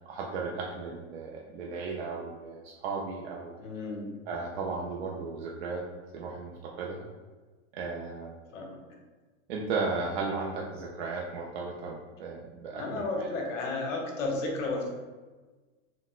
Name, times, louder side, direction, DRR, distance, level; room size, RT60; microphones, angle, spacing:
voice 1, 0.1-3.5 4.3-5.8 6.1-7.0 7.7-8.4 9.5-13.3, right 4 dB, 55° right, -2 dB, 0.5 m, -35 dB
voice 2, 3.6-4.1 8.5-8.8 12.7-14.9, left 2 dB, 80° left, 0 dB, 1.0 m, -33 dB
4.1 x 2.0 x 2.4 m, 1.3 s
supercardioid pair, 170°, 38 cm